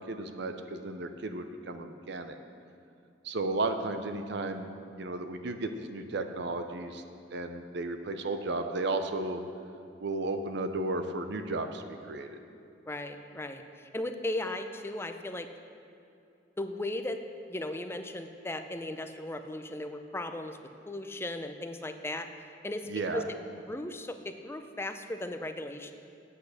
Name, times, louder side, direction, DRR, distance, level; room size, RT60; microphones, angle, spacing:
voice 1, 0.1-2.4 3.2-7.0 7.3-9.4 10.0-12.4 22.9-23.2, right 2 dB, 65° right, 7 dB, 0.7 m, -34 dB
voice 2, 12.9-15.5 16.6-17.2 17.5-20.6 20.9-22.3 22.6-25.9, left 1 dB, 15° left, 7 dB, 0.5 m, -37 dB
8.6 x 8.2 x 6.4 m, 2.6 s
head